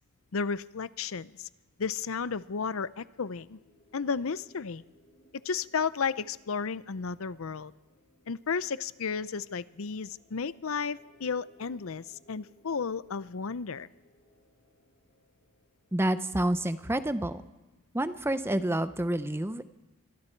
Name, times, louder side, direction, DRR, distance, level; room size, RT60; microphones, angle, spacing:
voice 1, 0.3-1.5 1.8-3.6 3.9-4.8 5.4-7.7 8.3-13.9, left 5 dB, 65° left, 16 dB, 0.6 m, -33 dB
sound 1, 1.6-17.2, left 1 dB, 50° left, 5.6 m, -64 dB
voice 2, 15.9-17.4 17.9-19.6, right 1 dB, 10° right, 12 dB, 0.7 m, -28 dB
27.5 x 24.0 x 4.5 m, 1.1 s
head